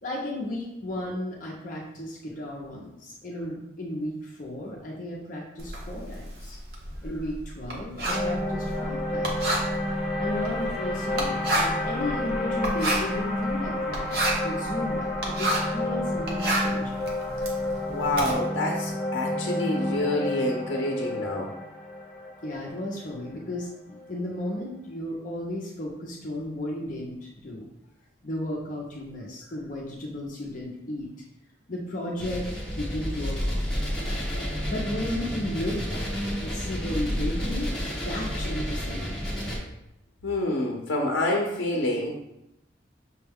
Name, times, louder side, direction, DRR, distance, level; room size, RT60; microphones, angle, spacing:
voice 1, 0.0-6.6 7.0-9.5 10.2-17.0 22.4-27.7 28.2-31.1 31.7-33.7 34.6-36.1 36.4-39.2, left 1 dB, 45° left, -3 dB, 0.6 m, -34 dB
Writing, 5.6-15.8 16.1-18.3, right 1 dB, 50° right, 0.8 m, -30 dB
sound 1, 8.1-24.3, left 1 dB, 20° left, 1.1 m, -30 dB
voice 2, 17.9-21.5 40.2-42.2, left 1 dB, 90° left, 0 dB, 0.6 m, -27 dB
sound 2, 32.2-39.6, equal, 5° left, 1.0 m, -30 dB
6.2 x 2.2 x 3.4 m, 0.85 s
head